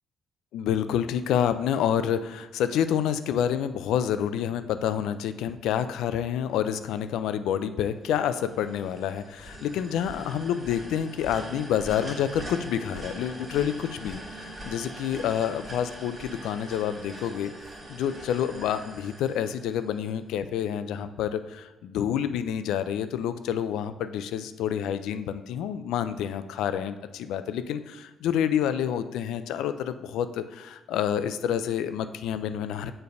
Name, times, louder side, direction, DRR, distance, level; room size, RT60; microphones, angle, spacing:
voice 1, 0.5-17.5 17.9-32.9, left 9 dB, 85° left, 11 dB, 0.3 m, -28 dB
sound 1, 8.1-20.2, right 1 dB, 30° right, 2.1 m, -42 dB
6.9 x 3.3 x 5.3 m, 1.1 s
cardioid pair, 90°, 0 cm